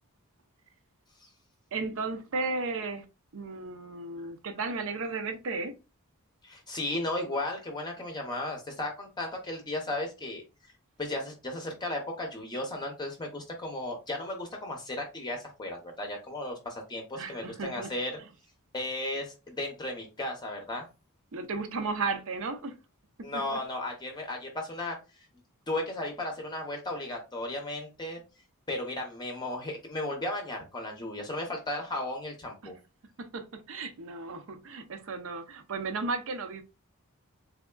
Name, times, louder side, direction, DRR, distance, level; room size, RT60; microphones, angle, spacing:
voice 1, 1.7-3.0 3.3-5.7 17.1-17.9 21.3-22.8 23.5-23.6 32.6-32.7 33.2-36.6, right 3 dB, 65° right, 0.6 m, -34 dB
voice 2, 6.4-10.4 11.0-18.1 18.7-20.9 23.2-25.0 25.7-28.2 28.7-32.7, left 1 dB, 20° left, 0.6 m, -35 dB
3.5 x 3.4 x 2.2 m
head